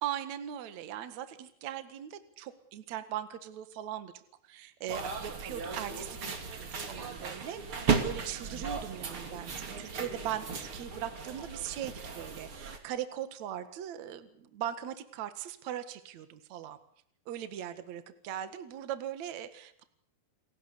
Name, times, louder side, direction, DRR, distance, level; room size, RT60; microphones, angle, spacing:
voice 1, 0.0-16.8 17.3-19.8, right 11 dB, 55° right, 10 dB, 2.5 m, -40 dB
sound 1, 4.9-12.8, right 5 dB, 35° right, 3.1 m, -36 dB
29.5 x 18.0 x 8.3 m, 0.69 s
omnidirectional pair, 4.7 m